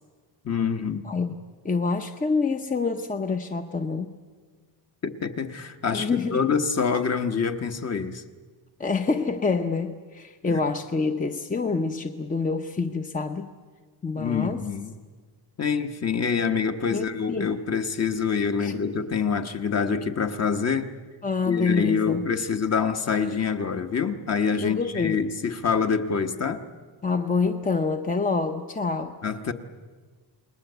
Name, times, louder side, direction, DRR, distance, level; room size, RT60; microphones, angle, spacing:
voice 1, 0.4-1.0 5.0-8.2 10.4-10.6 14.1-14.9 15.6-20.9 21.4-26.6 29.2-29.5, left 6 dB, 35° left, 7 dB, 1.2 m, -26 dB
voice 2, 1.0-1.4 1.6-4.1 5.9-6.5 8.8-13.5 14.0-14.6 16.9-17.5 18.6-18.7 21.2-22.3 24.6-25.2 27.0-29.2, left 4 dB, 20° left, 6 dB, 0.7 m, -27 dB
29.0 x 20.0 x 8.1 m, 1.5 s
wide cardioid pair, 180°, 44 cm